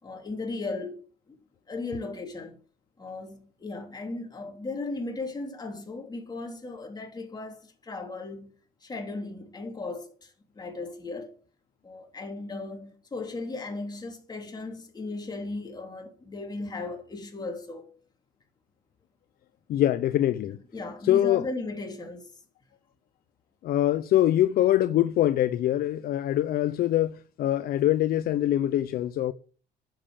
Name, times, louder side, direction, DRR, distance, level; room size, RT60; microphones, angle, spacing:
voice 1, 0.0-1.4 1.7-2.6 3.0-8.6 8.8-11.3 11.8-17.9 20.7-22.3, left 3 dB, 25° left, 3.1 m, -36 dB
voice 2, 19.7-20.6 21.0-21.5 23.6-29.3, left 13 dB, 65° left, 0.6 m, -24 dB
10.0 x 7.5 x 6.6 m
cardioid pair, 110°, 17 cm